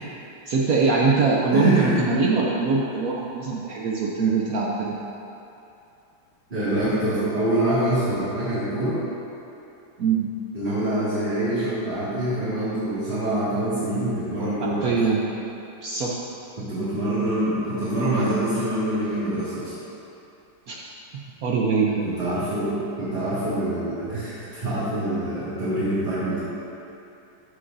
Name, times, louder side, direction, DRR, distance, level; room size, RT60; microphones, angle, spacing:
voice 1, 0.5-5.0 10.0-10.3 14.6-15.2 15.8-16.1 20.7-20.8 21.1-22.1, right 4 dB, 70° right, -3 dB, 0.8 m, -22 dB
voice 2, 1.5-2.1 6.5-9.0 10.5-14.9 16.6-19.7 22.0-26.4, right 1 dB, 25° right, -15 dB, 2.2 m, -25 dB
13.5 x 6.5 x 2.6 m, 2.7 s
omnidirectional pair, 2.3 m